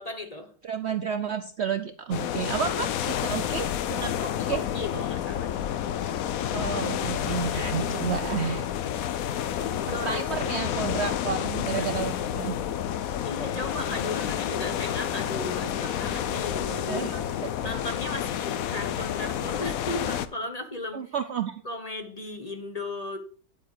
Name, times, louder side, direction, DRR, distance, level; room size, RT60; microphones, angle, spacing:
voice 1, 0.0-0.5 4.2-5.5 9.8-10.2 11.8-11.9 13.2-17.2 17.6-21.1 21.6-23.2, left 2 dB, 25° left, 6 dB, 1.0 m, -36 dB
voice 2, 0.6-4.1 4.5-4.6 6.5-8.7 9.6-12.6 16.9-17.1 17.4-17.5 20.9-21.6, right 7 dB, 85° right, 10 dB, 0.5 m, -31 dB
sound 1, 2.1-20.3, left 10 dB, 65° left, 1.0 m, -30 dB
9.7 x 8.5 x 4.8 m, 0.43 s
omnidirectional pair, 1.9 m